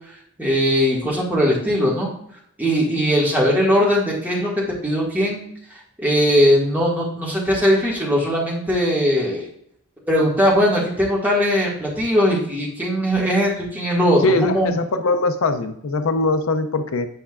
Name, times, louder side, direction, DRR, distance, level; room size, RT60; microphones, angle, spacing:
voice 1, 0.4-2.1 2.6-4.5 4.8-5.5 6.0-9.5 10.1-14.7, equal, 10° right, -4 dB, 1.7 m, -19 dB
voice 2, 14.2-17.1, left 2 dB, 70° left, 9 dB, 0.5 m, -21 dB
7.8 x 5.7 x 2.4 m, 0.70 s
head